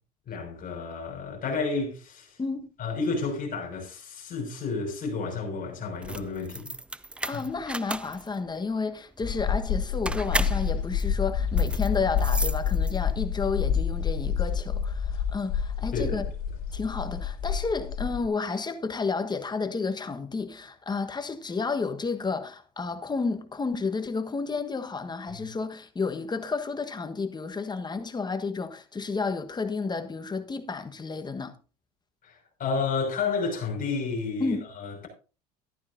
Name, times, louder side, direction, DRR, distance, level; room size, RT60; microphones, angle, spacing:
voice 1, 0.3-2.4 2.8-6.7 15.9-16.2 25.3-25.4 32.2-35.1, left 4 dB, 45° left, 6.2 m, -31 dB
voice 2, 2.4-2.7 7.2-16.3 16.7-31.5 34.4-34.6, left 4 dB, 20° left, 1.4 m, -31 dB
sound 1, 5.9-13.3, right 1 dB, 5° right, 0.4 m, -35 dB
sound 2, 9.2-18.3, left 7 dB, 70° left, 3.6 m, -28 dB
14.0 x 11.5 x 2.7 m
supercardioid pair, 85°, 20 cm